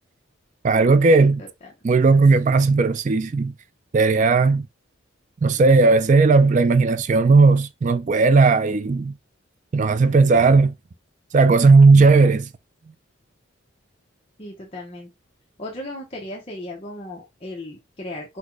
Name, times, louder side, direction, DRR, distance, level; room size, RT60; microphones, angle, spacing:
voice 1, 0.6-1.4 1.8-3.5 3.9-4.7 5.4-9.1 9.7-10.7 11.3-12.5, right 3 dB, 35° right, 0.3 m, -16 dB
voice 2, 1.4-1.7 14.4-15.1 15.6-18.4, left 1 dB, 30° left, 0.8 m, -36 dB
4.1 x 2.2 x 4.5 m
head